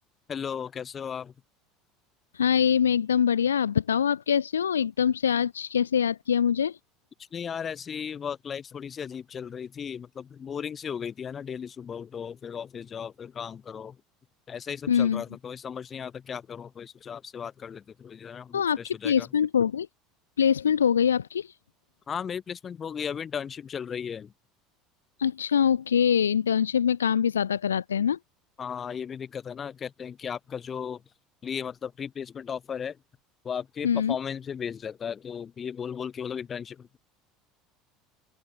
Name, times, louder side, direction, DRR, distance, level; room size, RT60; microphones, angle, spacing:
voice 1, 0.3-1.3 7.3-14.0 14.5-18.6 19.0-19.1 22.1-24.3 28.6-31.0 31.4-33.0 33.4-37.0, left 7 dB, 30° left, 2.1 m, -35 dB
voice 2, 2.3-6.8 14.9-15.2 18.5-19.9 20.4-21.5 25.2-28.2 33.8-34.2, left 8 dB, 75° left, 0.7 m, -24 dB
open air
figure-of-eight pair, 70°, 0 cm